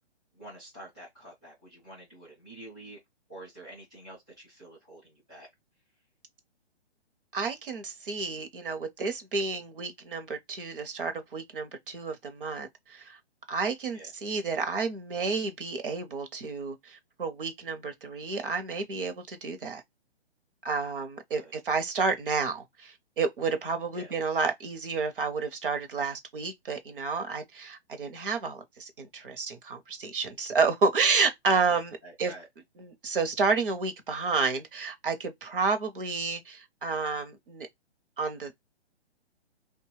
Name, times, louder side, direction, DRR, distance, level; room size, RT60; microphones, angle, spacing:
voice 1, 0.3-3.0 3.3-5.5 13.9-14.1 21.3-21.5 23.9-24.1 32.0-32.4, right 1 dB, 5° left, 0.4 m, -48 dB
voice 2, 7.3-13.2 13.5-19.8 20.6-32.3 32.8-37.7 38.2-38.6, right 4 dB, 55° right, 0.7 m, -30 dB
2.8 x 2.2 x 3.1 m
hypercardioid pair, 165°, 33 cm